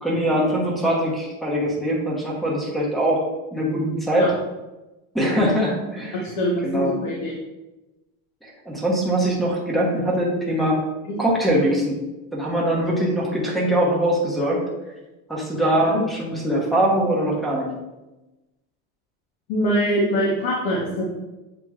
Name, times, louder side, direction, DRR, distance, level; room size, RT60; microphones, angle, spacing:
voice 1, 0.0-3.2 3.5-4.3 5.1-6.3 6.6-6.9 8.4-10.8 11.2-12.0 12.3-14.6 15.3-17.7, right 1 dB, ahead, -4 dB, 0.9 m, -22 dB
voice 2, 6.2-7.4 11.1-11.2 15.9-16.0 19.5-21.1, equal, 60° left, -4 dB, 1.1 m, -23 dB
7.3 x 3.0 x 2.4 m, 1.0 s
cardioid pair, 150°, 39 cm